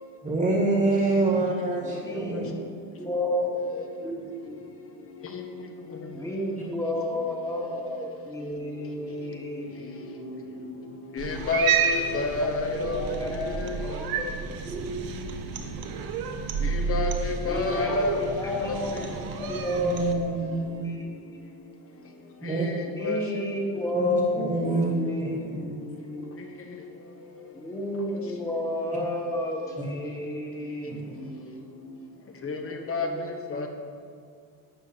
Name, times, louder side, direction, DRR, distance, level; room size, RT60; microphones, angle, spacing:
voice 1, 0.2-2.5 19.7-20.8 22.4-22.7 23.9-24.9 25.2-25.7 29.8-29.9 30.9-31.2, right 2 dB, 15° right, -2 dB, 1.9 m, -27 dB
voice 2, 1.8-2.6 3.0-4.5 6.1-10.9 12.1-14.9 15.2-15.3 17.4-18.1 18.4-21.4 22.8-24.7 24.9-26.3 27.5-32.0, left 1 dB, 10° left, -2 dB, 1.9 m, -32 dB
voice 3, 11.2-13.0 16.9-18.1 23.0-23.2 32.5-32.6 32.9-33.1 33.5-33.7, left 3 dB, 30° left, 4 dB, 1.3 m, -27 dB
Cat, 11.2-20.1, right 6 dB, 55° right, 1.1 m, -31 dB
12.0 x 9.2 x 4.6 m, 2.2 s
cardioid pair, 145°, 43 cm